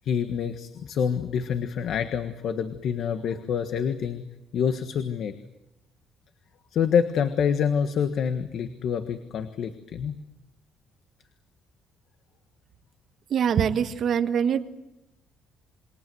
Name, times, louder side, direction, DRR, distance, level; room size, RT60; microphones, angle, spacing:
voice 1, 0.0-4.3 4.5-5.3 6.7-10.2, left 7 dB, 55° left, 9 dB, 1.5 m, -27 dB
voice 2, 13.3-14.6, right 8 dB, 45° right, 8 dB, 1.6 m, -23 dB
28.0 x 23.0 x 7.9 m, 0.91 s
cardioid pair, 160°, 0 cm